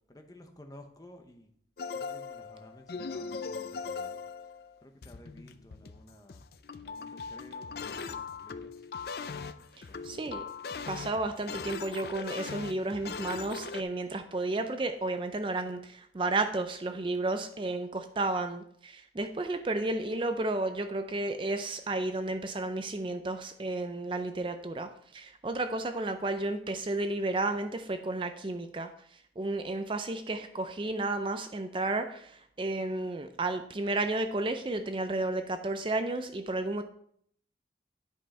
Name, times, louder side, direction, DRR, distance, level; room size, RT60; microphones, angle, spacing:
voice 1, 0.1-1.5 1.9-4.2 4.8-6.4 6.8-8.7 9.9-10.2, left 1 dB, 20° left, 4 dB, 0.9 m, -53 dB
sound 1, 1.8-13.8, left 5 dB, 60° left, 0.5 m, -40 dB
voice 2, 10.0-10.4 10.9-28.9 29.4-36.8, right 2 dB, 30° right, 8 dB, 0.4 m, -32 dB
10.0 x 5.5 x 4.2 m, 0.66 s
head